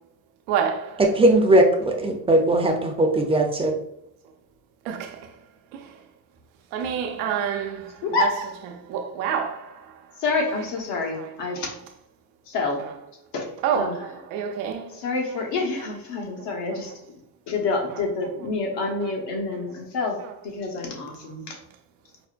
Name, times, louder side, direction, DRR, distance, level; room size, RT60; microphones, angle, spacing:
voice 1, 0.5-1.2 2.3-2.4 4.9-5.3 5.7-5.8 6.7-9.8 10.5-10.8 11.1-11.4 11.6-11.8 12.8-13.0 13.6-15.0 15.3-15.4 15.8-16.0 16.7-16.9 17.9-18.1 18.7-19.4 20.2-20.4, right 8 dB, 85° right, 0.6 m, -30 dB
voice 2, 1.0-3.7, right 1 dB, 15° right, 0.5 m, -19 dB
voice 3, 8.0-8.3 10.2-11.7 12.5-12.8 13.3-14.1 14.9-16.9 17.5-20.2 20.5-21.6, left 3 dB, 60° left, 1.1 m, -27 dB
4.7 x 2.1 x 2.4 m
supercardioid pair, 90°, 45 cm